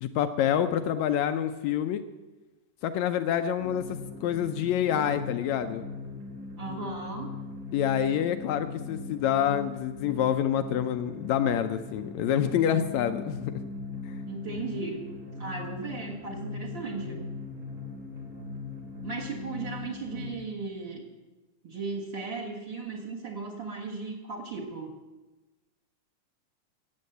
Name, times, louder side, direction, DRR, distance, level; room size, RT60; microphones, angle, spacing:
voice 1, 0.0-2.0 2.8-5.8 7.7-13.5 14.1-14.2, left 9 dB, 75° left, 9 dB, 1.8 m, -27 dB
sound 1, 3.6-20.3, left 3 dB, 90° right, 4.2 m, -39 dB
voice 2, 6.6-7.3 14.3-15.1 15.4-17.3 19.0-21.0 21.6-24.9, right 4 dB, 45° right, 1 dB, 2.0 m, -36 dB
15.5 x 8.6 x 7.8 m, 1.2 s
omnidirectional pair, 3.5 m